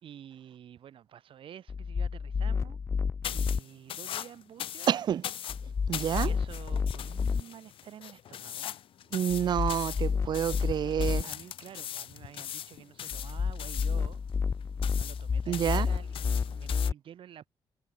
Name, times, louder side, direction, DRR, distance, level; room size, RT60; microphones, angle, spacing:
voice 1, 0.0-2.8 3.3-4.9 6.0-8.7 11.2-14.2 14.5-17.5, right 10 dB, 70° right, 2.8 m, -50 dB
sound 1, 1.7-3.6 5.5-7.4 9.3-11.2 13.1-16.9, left 5 dB, 30° left, 0.4 m, -30 dB
sound 2, 3.2-16.9, left 11 dB, 70° left, 1.1 m, -41 dB
voice 2, 4.9-5.2 5.9-6.3 9.1-11.2 15.5-15.9, right 9 dB, 50° right, 0.4 m, -28 dB
cardioid pair, 95°, 9 cm